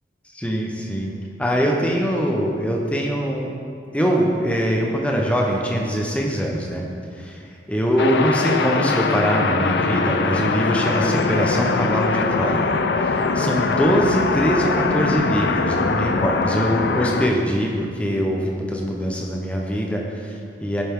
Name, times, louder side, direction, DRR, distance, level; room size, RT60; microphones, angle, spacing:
voice 1, 0.3-3.5 3.9-6.8 7.1-12.7 13.0-20.8, equal, 5° left, -1 dB, 0.9 m, -23 dB
sound 1, 8.0-17.3, left 4 dB, 75° left, 0.5 m, -22 dB
10.5 x 7.2 x 3.7 m, 2.4 s
head